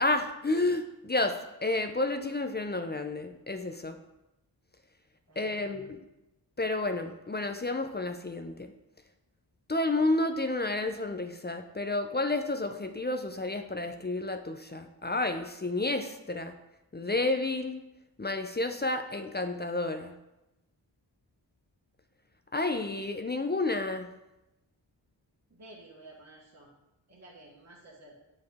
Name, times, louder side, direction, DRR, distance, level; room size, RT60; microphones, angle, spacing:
voice 1, 0.0-4.0 5.4-6.0 6.6-8.7 9.7-16.5 16.9-17.8 18.2-20.1 22.5-24.1, left 2 dB, 25° left, 7 dB, 0.5 m, -30 dB
voice 2, 5.3-5.8 25.5-26.7 27.1-28.2, right 2 dB, 35° right, -4 dB, 1.4 m, -52 dB
7.5 x 4.8 x 3.5 m, 0.94 s
cardioid pair, 55°, 44 cm